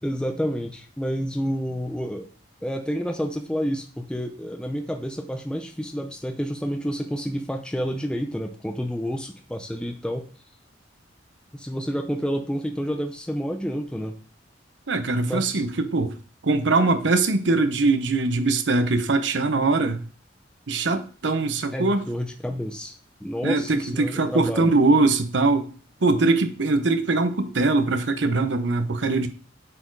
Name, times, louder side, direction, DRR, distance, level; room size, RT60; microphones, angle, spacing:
voice 1, 0.0-2.3 2.6-10.3 11.5-14.1 15.3-15.6 21.7-23.0 23.2-24.7, equal, 5° left, 0.6 m, -29 dB
voice 2, 14.9-16.1 16.4-20.0 20.7-22.0 23.4-25.7 26.0-29.3, right 3 dB, 75° right, 0.8 m, -22 dB
8.8 x 4.4 x 4.6 m
head